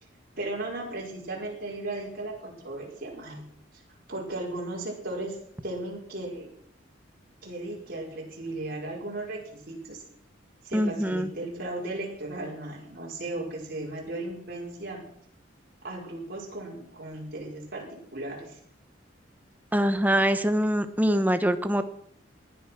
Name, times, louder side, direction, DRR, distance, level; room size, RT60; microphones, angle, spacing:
voice 1, 0.4-3.4 4.1-5.4 5.6-6.5 7.4-10.0 10.6-15.0 15.8-17.9 18.1-18.6, right 2 dB, 50° right, -3 dB, 5.4 m, -36 dB
voice 2, 10.7-11.3 19.7-21.8, equal, 10° right, 9 dB, 1.0 m, -24 dB
19.0 x 11.0 x 6.0 m, 0.68 s
head